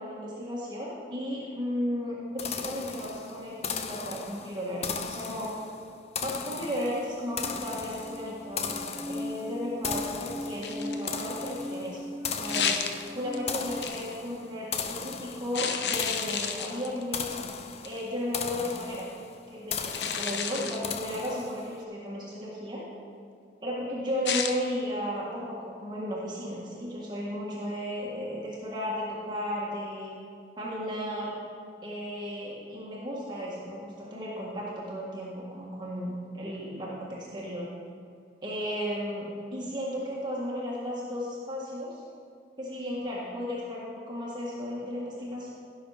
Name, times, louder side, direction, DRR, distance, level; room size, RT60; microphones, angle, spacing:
voice 1, 0.0-5.5 6.2-12.0 12.3-12.8 13.1-17.4 17.8-19.1 19.5-22.8 23.6-30.1 30.6-31.3 31.8-37.7 38.4-42.0 42.6-45.5, equal, 25° right, -6 dB, 1.7 m, -34 dB
sound 1, 2.4-21.8, left 6 dB, 35° left, 0.6 m, -37 dB
sound 2, 7.4-13.8, equal, 5° right, 0.4 m, -39 dB
sound 3, 10.6-11.3 12.4-13.4 13.8-14.1 15.5-17.0 17.8-18.1 19.9-20.9 24.3-24.6, left 7 dB, 75° left, 0.8 m, -31 dB
16.0 x 6.4 x 5.0 m, 2.4 s
head